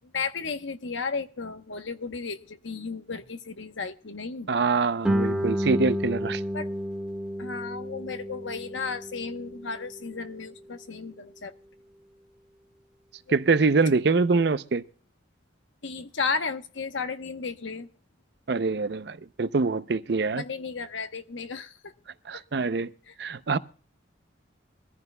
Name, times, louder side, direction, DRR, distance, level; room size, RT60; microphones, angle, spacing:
voice 1, 0.0-4.5 6.5-6.7 7.4-11.5 13.3-13.4 15.8-17.9 20.3-21.9 22.3-22.4 23.1-23.2, left 5 dB, 75° left, 1.0 m, -34 dB
voice 2, 4.5-6.4 13.3-14.8 18.5-20.4 22.3-22.9 23.2-23.6, right 4 dB, 60° right, 0.5 m, -24 dB
Guitar, 5.0-10.4, equal, 5° right, 1.6 m, -31 dB
23.5 x 14.5 x 2.2 m
head